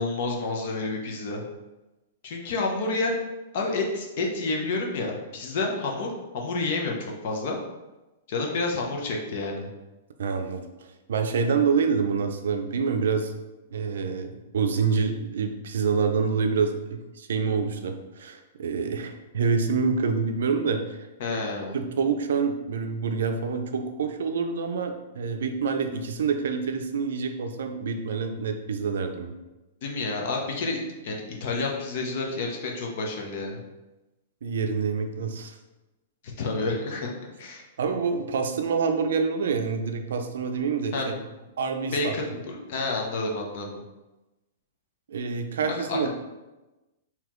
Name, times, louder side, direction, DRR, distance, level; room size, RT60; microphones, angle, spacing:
voice 1, 0.0-1.4 2.2-3.2 3.5-7.6 8.3-9.7 21.2-21.8 29.8-33.6 36.2-37.6 40.9-41.1 41.4-41.5 41.9-43.8 45.9-46.1, left 3 dB, 45° left, 0 dB, 0.7 m, -29 dB
voice 2, 10.2-13.3 13.7-21.0 21.7-29.3 34.4-35.6 37.8-41.1 41.6-42.1 45.1-46.1, right 5 dB, 75° right, 6 dB, 0.5 m, -27 dB
4.0 x 2.8 x 3.0 m, 1.1 s
hypercardioid pair, 175°, 0 cm